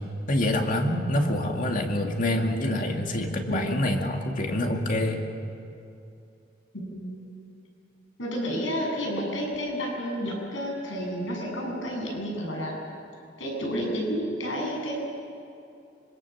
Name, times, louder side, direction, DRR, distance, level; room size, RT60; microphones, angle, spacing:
voice 1, 0.3-5.2, left 1 dB, 45° left, 2 dB, 2.4 m, -26 dB
voice 2, 3.5-3.8 6.7-7.4 8.2-12.8 13.4-14.9, equal, 85° left, -1 dB, 7.9 m, -31 dB
25.5 x 25.0 x 7.4 m, 2.7 s
head